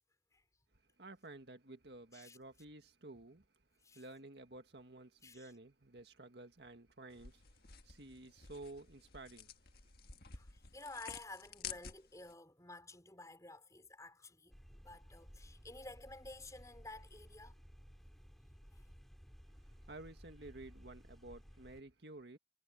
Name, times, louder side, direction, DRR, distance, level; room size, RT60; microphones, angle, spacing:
voice 1, 1.0-3.5 3.9-9.6 9.8-9.9 19.6-22.4, right 2 dB, 65° right, 1.9 m, -53 dB
sound 1, 7.1-12.3, left 7 dB, 55° left, 1.7 m, -51 dB
voice 2, 10.3-17.5 18.7-18.9, left 2 dB, 20° left, 5.0 m, -53 dB
sound 2, 14.5-21.8, equal, ahead, 6.1 m, -58 dB
head